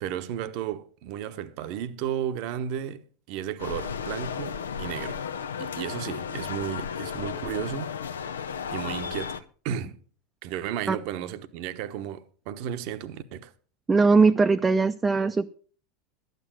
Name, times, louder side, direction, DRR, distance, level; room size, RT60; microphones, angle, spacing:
voice 1, 0.0-5.2 5.6-7.9 8.7-10.0 10.4-13.5, right 10 dB, 55° right, 1.0 m, -34 dB
sound 1, 3.6-9.4, left 7 dB, 75° left, 0.7 m, -34 dB
voice 2, 13.9-15.5, right 4 dB, 20° right, 0.6 m, -20 dB
12.5 x 9.3 x 6.1 m
figure-of-eight pair, 80°, 0 cm